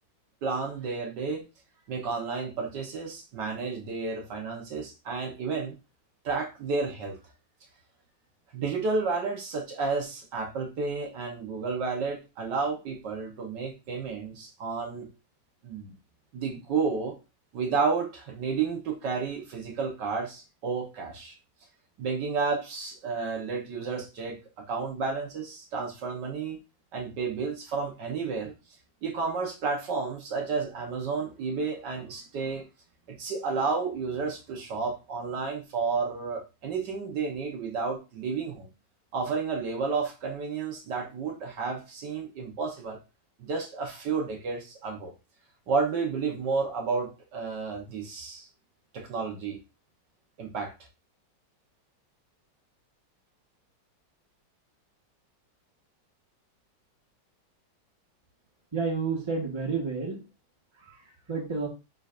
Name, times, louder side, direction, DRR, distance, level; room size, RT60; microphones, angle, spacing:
voice 1, 0.4-1.4 1.9-5.8 6.2-7.2 8.5-15.1 15.6-15.9 16.3-17.2 17.5-21.4 22.0-24.4 24.7-26.6 26.9-28.5 29.0-32.7 33.1-38.7 39.1-43.0 43.4-45.1 45.7-48.5 48.9-49.6 50.4-50.7, right 4 dB, 70° right, 2 dB, 1.7 m, -31 dB
voice 2, 58.7-60.2 60.8-61.7, right 4 dB, 15° right, 0 dB, 1.4 m, -31 dB
9.4 x 3.9 x 2.5 m, 0.29 s
omnidirectional pair, 1.9 m